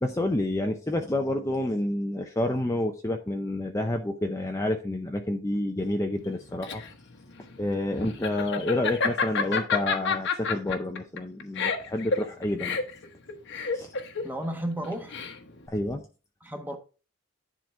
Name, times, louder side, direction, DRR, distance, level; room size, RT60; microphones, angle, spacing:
voice 1, 0.0-6.8 7.6-12.8 13.7-13.9 15.7-16.0, left 1 dB, 15° left, 0.6 m, -29 dB
Laughter, 6.2-15.7, left 5 dB, 60° left, 1.1 m, -29 dB
voice 2, 14.2-15.2 16.4-16.8, right 1 dB, 10° right, 1.2 m, -33 dB
10.5 x 3.9 x 4.4 m
head